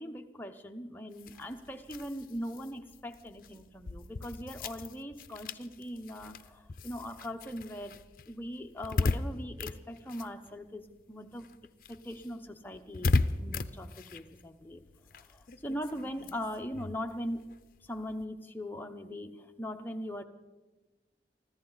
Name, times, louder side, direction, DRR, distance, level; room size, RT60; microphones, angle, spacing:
voice 1, 0.0-8.0 8.3-11.4 11.9-14.8 15.3-17.5 17.9-20.2, equal, 10° left, 5 dB, 0.8 m, -40 dB
sound 1, 1.1-11.0 11.3-18.2, left 3 dB, 50° left, 0.5 m, -37 dB
25.0 x 14.5 x 4.0 m, 1.2 s
head